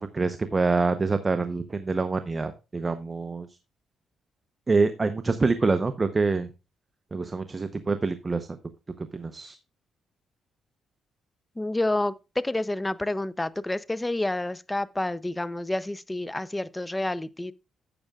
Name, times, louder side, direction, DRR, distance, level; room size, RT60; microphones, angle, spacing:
voice 1, 0.0-3.5 4.7-6.5 7.1-8.5 9.0-9.5, right 3 dB, 25° right, 0.8 m, -26 dB
voice 2, 11.6-17.5, left 2 dB, 15° left, 0.6 m, -29 dB
12.0 x 8.7 x 2.4 m
cardioid pair, 90°, 0 cm